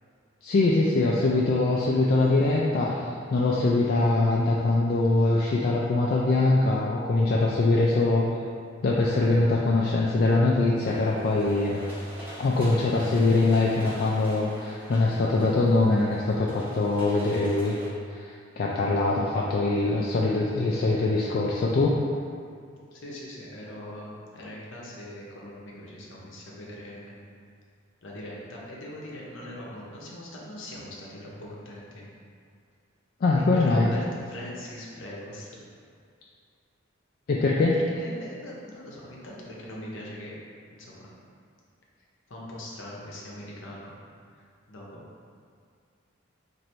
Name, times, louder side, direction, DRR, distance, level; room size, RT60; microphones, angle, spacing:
voice 1, 0.4-8.3 8.8-11.8 12.4-17.7 18.1-18.3 18.6-21.9 33.2-33.9 37.3-37.7, left 2 dB, 45° left, -4 dB, 0.3 m, -23 dB
sound 1, 10.7-17.9, equal, 10° right, 0.9 m, -44 dB
voice 2, 22.9-27.1 28.0-32.0 33.3-35.6 37.6-40.3 40.7-41.1 42.3-44.0 44.3-45.0, left 1 dB, 65° left, -4 dB, 0.7 m, -41 dB
3.1 x 2.5 x 4.4 m, 2.3 s
head